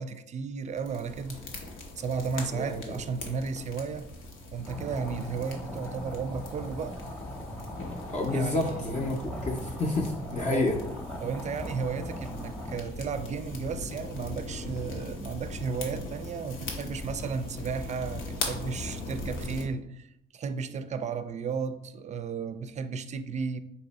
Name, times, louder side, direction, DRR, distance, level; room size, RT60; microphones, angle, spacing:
voice 1, 0.0-1.4 2.0-4.1 4.5-7.0 8.3-9.3 10.5-10.7 11.2-23.6, right 5 dB, 35° right, 0.4 m, -34 dB
sound 1, 0.7-19.7, left 2 dB, 85° left, 0.9 m, -40 dB
sound 2, 4.6-12.8, equal, 5° left, 0.8 m, -40 dB
voice 2, 8.1-10.8, left 2 dB, 35° left, 0.6 m, -29 dB
4.2 x 2.6 x 4.0 m
cardioid pair, 90°, 20 cm